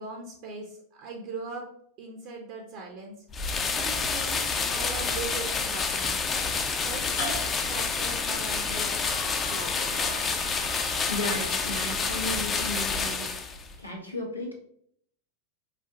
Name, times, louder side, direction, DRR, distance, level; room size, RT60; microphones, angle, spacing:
voice 1, 0.0-1.6 2.0-3.1 3.7-6.2 6.8-8.9 9.5-10.0, right 3 dB, 45° right, 1 dB, 0.5 m, -40 dB
sound 1, 3.3-3.4 4.5-4.6 5.7-5.8 6.8-12.7, left 2 dB, 50° left, 0.8 m, -43 dB
sound 2, 3.3-13.7, left 5 dB, 20° left, 0.4 m, -28 dB
sound 3, 8.6-12.8, right 1 dB, 70° right, 1.0 m, -43 dB
voice 2, 10.8-14.5, left 2 dB, 90° left, -3 dB, 0.7 m, -35 dB
4.1 x 2.4 x 2.7 m, 0.67 s
figure-of-eight pair, 90°, 0 cm